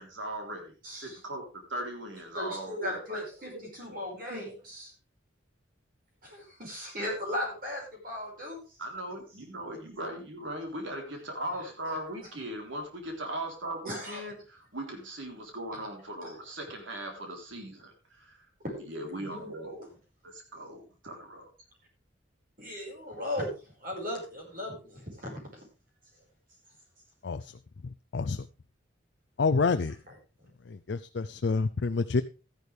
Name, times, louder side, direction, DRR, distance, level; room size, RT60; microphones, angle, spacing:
voice 1, 0.0-3.2 3.5-4.0 4.3-4.5 8.8-18.5 18.8-19.9 20.2-21.5, right 1 dB, 80° right, 3 dB, 3.6 m, -39 dB
voice 2, 0.8-1.2 2.3-4.9 6.2-8.8 13.9-14.2 15.7-15.8 16.2-16.3 18.6-18.8 19.1-19.5 22.6-25.6, left 1 dB, 45° right, 1 dB, 5.2 m, -37 dB
voice 3, 28.1-28.5 29.4-30.0 30.7-32.2, left 4 dB, 65° left, 11 dB, 0.5 m, -28 dB
13.5 x 11.0 x 3.4 m, 0.32 s
head